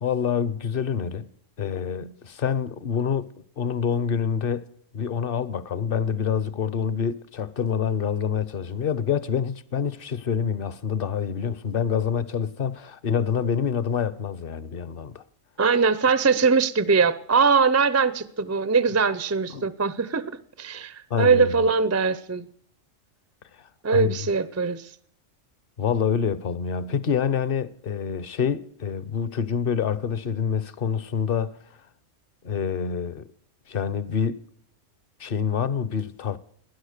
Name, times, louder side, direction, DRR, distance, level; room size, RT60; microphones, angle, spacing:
voice 1, 0.0-3.3 3.6-4.6 4.9-15.2 19.5-19.7 21.1-21.7 23.9-24.1 25.8-31.5 32.4-33.2 33.7-34.4 35.2-36.4, left 7 dB, 50° left, 0.9 m, -26 dB
voice 2, 15.6-22.5 23.8-24.9, right 5 dB, 25° right, 0.3 m, -22 dB
19.5 x 9.8 x 6.5 m
omnidirectional pair, 1.3 m